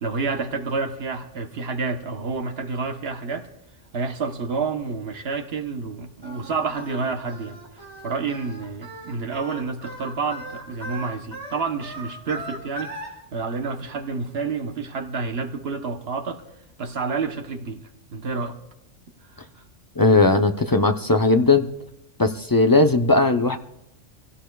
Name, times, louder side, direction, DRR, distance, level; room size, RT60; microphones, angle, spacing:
voice 1, 0.0-3.5 3.9-7.6 8.0-16.4 16.8-18.6 19.3-19.4, right 4 dB, 55° right, 1.2 m, -29 dB
Singing, 6.2-13.1, right 1 dB, 20° right, 3.8 m, -38 dB
voice 2, 20.0-21.7 22.2-23.6, left 2 dB, 30° left, 0.4 m, -18 dB
26.0 x 16.5 x 2.3 m
omnidirectional pair, 1.3 m